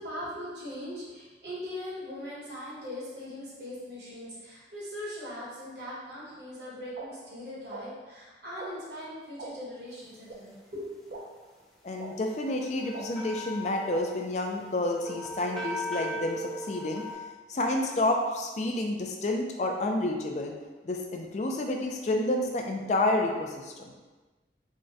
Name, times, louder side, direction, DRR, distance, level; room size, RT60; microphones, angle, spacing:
voice 1, 0.0-11.2, left 1 dB, 65° right, -7 dB, 1.4 m, -40 dB
sound 1, 7.0-7.1 7.7-7.8 8.6-8.7 9.4-9.5 10.3-10.4 11.1-11.2 12.0-12.1 12.9-13.1 13.9-14.0, right 3 dB, 50° right, 0.5 m, -40 dB
voice 2, 11.8-17.0 17.5-20.5 20.8-23.7, left 1 dB, 40° left, 2 dB, 0.4 m, -29 dB
sound 2, 12.1-17.1, left 1 dB, 5° left, 0.7 m, -39 dB
3.6 x 2.2 x 3.9 m, 1.3 s
head